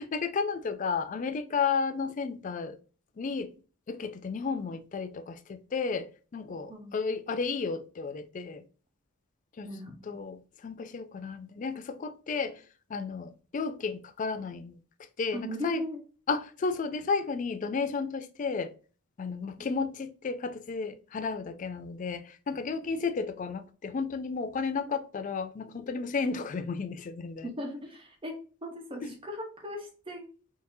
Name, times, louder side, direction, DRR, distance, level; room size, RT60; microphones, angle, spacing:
voice 1, 0.0-2.8 3.2-3.5 3.9-8.6 9.6-9.7 10.1-12.6 12.9-14.8 15.2-15.8 16.3-18.7 19.2-27.5 29.0-29.2, left 5 dB, 35° left, 0.3 m, -33 dB
voice 2, 15.3-16.0 19.6-19.7 27.4-28.4 28.6-30.3, left 1 dB, 25° right, 0.8 m, -37 dB
3.6 x 2.7 x 2.6 m
head